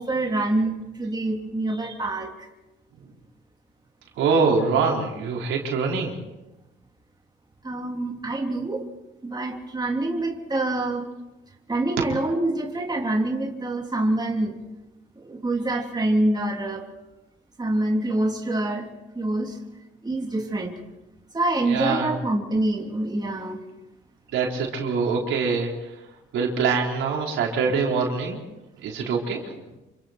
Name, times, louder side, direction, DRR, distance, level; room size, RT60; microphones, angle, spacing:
voice 1, 0.0-2.5 7.6-8.9 9.2-11.1 11.7-14.6 15.2-16.8 17.6-18.9 19.1-19.6 20.0-20.7 21.3-23.6, right 2 dB, 20° right, 1 dB, 3.4 m, -26 dB
voice 2, 4.2-6.2 21.7-22.1 24.3-25.9 26.3-28.4 28.8-29.6, right 5 dB, 85° right, -1 dB, 4.5 m, -24 dB
28.0 x 25.5 x 4.5 m, 1.0 s
cardioid pair, 90°, 20 cm